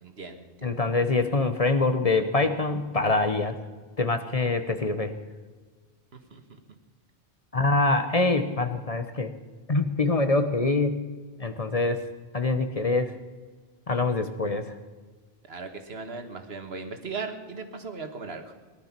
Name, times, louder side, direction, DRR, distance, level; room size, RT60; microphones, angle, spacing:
voice 1, 0.0-0.7 6.3-6.4 15.5-18.5, right 4 dB, 75° right, 7 dB, 1.7 m, -37 dB
voice 2, 0.6-3.6 4.0-5.1 7.5-9.3 9.7-11.0 11.4-12.1 12.3-13.1 13.9-14.7, left 3 dB, 35° left, 8 dB, 1.0 m, -24 dB
18.5 x 11.5 x 6.0 m, 1.4 s
omnidirectional pair, 1.1 m